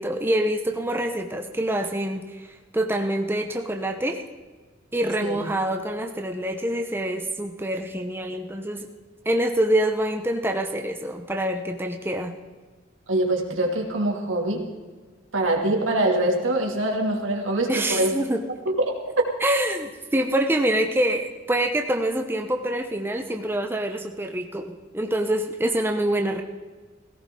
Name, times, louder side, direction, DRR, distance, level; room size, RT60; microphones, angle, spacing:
voice 1, 0.0-2.5 2.7-4.2 4.9-8.9 9.2-12.3 17.7-18.4 19.4-24.7 24.9-26.4, right 1 dB, 10° right, 4 dB, 0.9 m, -25 dB
voice 2, 13.1-14.7 15.3-18.2 18.9-19.3, right 1 dB, 90° right, 1 dB, 2.7 m, -24 dB
18.0 x 16.5 x 3.8 m, 1.3 s
head